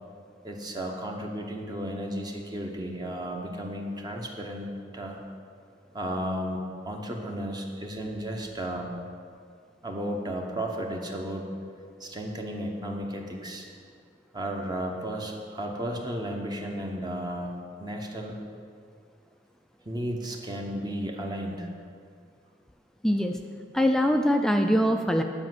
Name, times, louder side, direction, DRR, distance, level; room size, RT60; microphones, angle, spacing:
voice 1, 0.4-4.7 4.9-5.2 5.9-8.9 9.8-11.5 12.0-13.7 14.3-18.4 19.8-21.7, equal, 25° right, 1 dB, 0.9 m, -34 dB
voice 2, 23.0-23.4 23.7-25.2, equal, 5° left, 5 dB, 0.4 m, -23 dB
10.0 x 5.1 x 7.6 m, 2.2 s
head